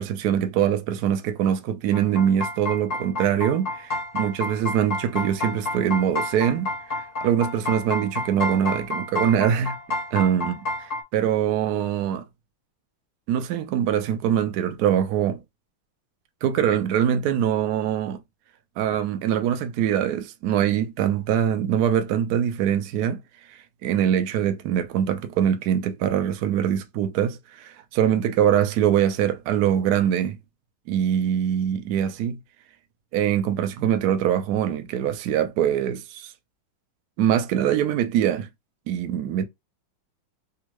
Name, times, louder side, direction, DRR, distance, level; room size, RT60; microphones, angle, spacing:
voice 1, 0.0-9.8 10.1-10.5 11.1-12.2 13.3-15.4 16.4-18.2 18.8-23.2 23.5-30.4 30.9-32.4 33.1-36.3 37.2-38.5 38.9-39.4, right 9 dB, 80° right, 0.8 m, -23 dB
sound 1, 1.9-11.0, left 2 dB, 45° left, 0.8 m, -30 dB
3.5 x 2.4 x 3.0 m
omnidirectional pair, 2.3 m